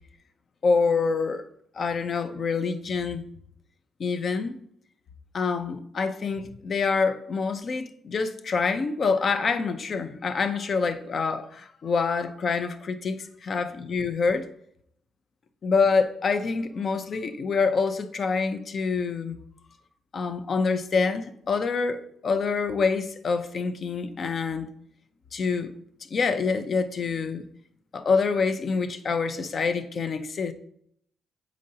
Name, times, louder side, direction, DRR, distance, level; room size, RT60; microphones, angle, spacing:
voice 1, 0.6-1.5 1.7-3.3 4.0-4.6 5.3-14.5 15.6-19.4 20.1-24.7 25.3-25.7 26.1-27.4 27.9-30.5, left 4 dB, 50° left, 0.6 m, -26 dB
7.6 x 5.1 x 2.8 m
cardioid pair, 90°, 0 cm